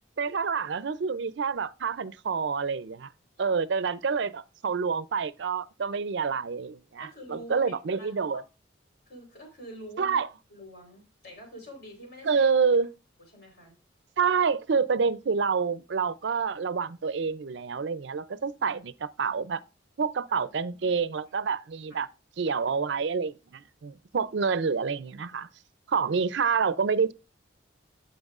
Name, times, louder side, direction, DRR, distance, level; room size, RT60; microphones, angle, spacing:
voice 1, 0.2-3.1 3.4-8.4 10.0-10.3 12.2-12.9 14.2-19.6 20.0-22.1 22.4-25.5 25.9-27.1, right 5 dB, 65° right, 0.5 m, -27 dB
voice 2, 7.0-8.4 9.1-10.2 10.5-12.5 13.3-13.7 20.3-20.4 20.7-21.0 21.9-22.0, equal, 55° left, 4.0 m, -46 dB
12.0 x 7.6 x 2.4 m
head